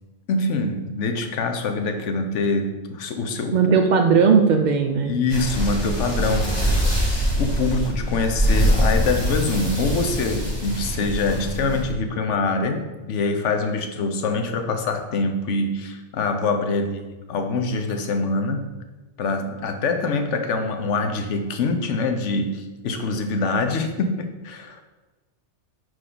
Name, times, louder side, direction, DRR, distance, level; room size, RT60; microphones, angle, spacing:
voice 1, 0.3-3.8 5.1-6.8 7.4-17.0 17.3-18.7 19.2-24.1 24.4-24.8, left 3 dB, 75° left, 5 dB, 1.1 m, -24 dB
voice 2, 3.5-5.1, right 5 dB, 60° right, 4 dB, 0.4 m, -17 dB
sound 1, 5.3-11.9, equal, 20° left, 1.4 m, -23 dB
6.3 x 4.9 x 3.8 m, 1.2 s
omnidirectional pair, 1.2 m